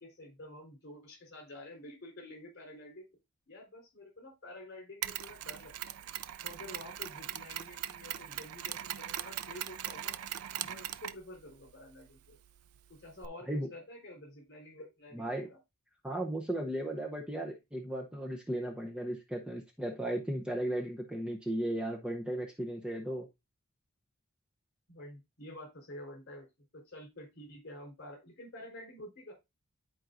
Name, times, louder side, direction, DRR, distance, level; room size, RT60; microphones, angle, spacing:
voice 1, 0.0-3.1 3.5-6.0 6.4-10.2 10.6-12.4 12.9-15.6 24.9-26.5 26.7-29.3, left 1 dB, 50° left, 2 dB, 4.1 m, -49 dB
Mechanisms, 5.0-13.3, right 11 dB, 85° right, 0.5 m, -41 dB
voice 2, 15.1-15.5 16.0-23.3, right 1 dB, 5° right, 1 dB, 0.8 m, -36 dB
11.5 x 4.5 x 2.6 m, 0.22 s
head